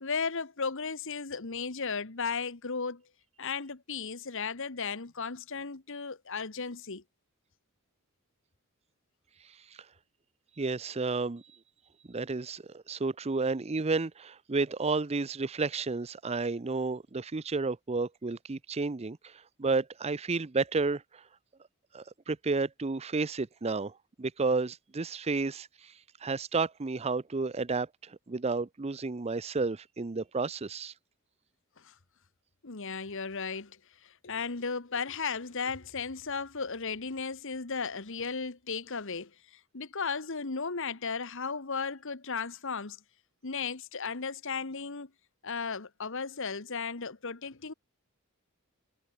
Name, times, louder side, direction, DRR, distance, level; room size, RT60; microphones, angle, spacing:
voice 1, 0.0-3.0 3.4-7.0 31.8-31.9 32.6-43.0 43.4-45.1 45.4-47.7, left 5 dB, 60° left, 1.4 m, -35 dB
voice 2, 10.6-11.4 12.1-21.2 21.9-25.9 26.2-30.9, right 3 dB, 30° right, 0.6 m, -31 dB
head